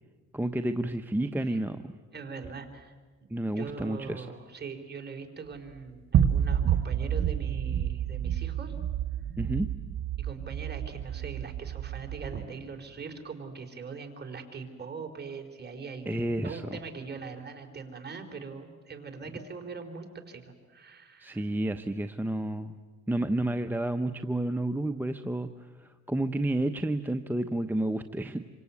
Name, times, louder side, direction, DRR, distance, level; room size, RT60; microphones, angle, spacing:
voice 1, 0.3-1.8 3.3-4.3 9.4-9.7 16.1-16.6 21.2-22.8 23.1-25.5 25.8-28.4, right 1 dB, 5° right, 8 dB, 0.9 m, -30 dB
voice 2, 2.1-2.9 3.5-8.7 10.2-16.1 16.4-21.4, right 5 dB, 35° right, 4 dB, 3.9 m, -41 dB
sound 1, 6.1-12.5, right 9 dB, 65° right, 1.6 m, -29 dB
27.0 x 25.0 x 8.4 m, 1.5 s
cardioid pair, 90°, 30 cm